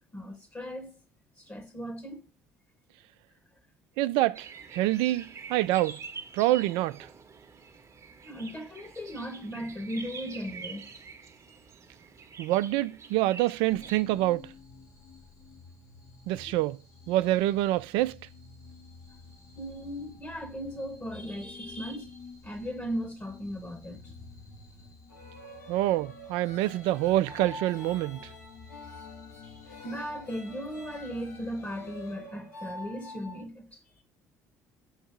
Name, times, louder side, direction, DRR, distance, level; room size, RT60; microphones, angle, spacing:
voice 1, 0.1-0.9 1.4-2.2 8.2-10.9 16.4-16.6 19.6-22.2 22.4-24.1 24.5-24.6 29.4-33.7, equal, 25° left, 1.1 m, -37 dB
voice 2, 4.0-6.0 6.3-7.1 12.4-14.5 16.3-16.8 17.1-18.2 25.7-28.3, right 16 dB, 70° right, 0.4 m, -26 dB
sound 1, 4.3-14.0, right 5 dB, 35° right, 0.9 m, -46 dB
sound 2, 13.7-32.2, left 4 dB, 45° left, 1.7 m, -52 dB
sound 3, 25.1-33.4, left 1 dB, 85° left, 2.0 m, -46 dB
7.2 x 2.7 x 5.8 m
hypercardioid pair, 60°, 9 cm